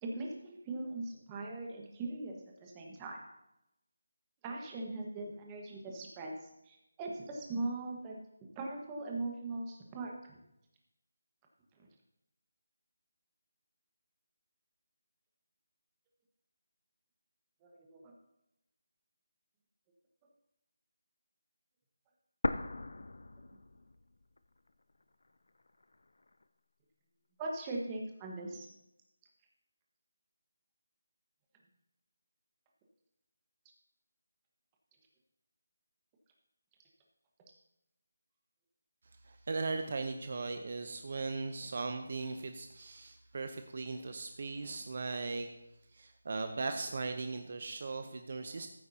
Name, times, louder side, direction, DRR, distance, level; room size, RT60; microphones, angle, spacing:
voice 1, 0.0-3.2 4.4-8.2 8.5-10.4 17.6-18.1 27.4-28.7, right 2 dB, 15° right, -1 dB, 1.3 m, -40 dB
sound 1, 22.4-24.4 24.7-24.8 25.5-26.4, left 2 dB, 80° left, 0.5 m, -38 dB
voice 2, 39.2-45.5 45.9-48.7, right 3 dB, 50° right, 7 dB, 0.7 m, -38 dB
14.5 x 8.3 x 2.8 m, 0.86 s
figure-of-eight pair, 170°, 0 cm